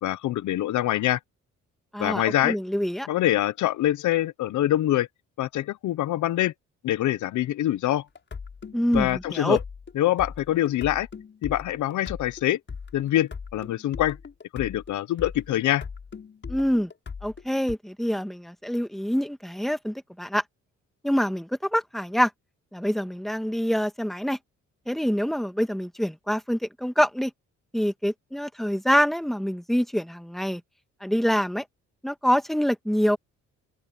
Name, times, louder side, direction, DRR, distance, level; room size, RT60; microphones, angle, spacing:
voice 1, 0.0-1.2 2.0-2.6 3.1-5.1 5.4-6.5 6.8-8.0 8.9-9.6 10.0-11.1 11.4-12.6 12.9-14.2 14.5-15.9, left 13 dB, 75° left, 0.9 m, -24 dB
voice 2, 1.9-3.1 8.7-9.6 16.5-16.9 17.2-20.4 21.0-22.3 22.7-24.4 24.9-27.3 27.7-30.6 31.0-31.7 32.0-33.2, equal, ahead, 1.9 m, -25 dB
sound 1, 8.2-17.8, left 5 dB, 40° left, 6.9 m, -39 dB
open air
cardioid pair, 90°, 30 cm